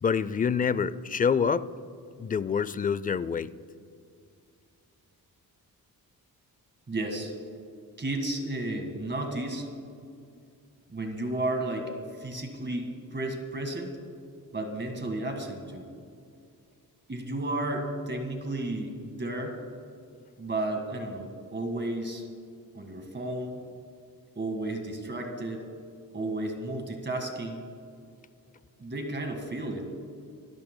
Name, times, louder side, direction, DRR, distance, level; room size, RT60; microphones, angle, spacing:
voice 1, 0.0-1.7 2.2-3.5, left 6 dB, 25° left, 17 dB, 0.3 m, -26 dB
voice 2, 6.9-7.3 8.0-9.7 10.9-13.9 14.5-15.9 17.1-19.6 20.4-22.3 22.7-23.6 24.3-25.7 26.1-27.7 28.8-29.9, right 2 dB, 30° right, 4 dB, 1.7 m, -33 dB
26.5 x 13.5 x 2.2 m, 2.4 s
cardioid pair, 105°, 37 cm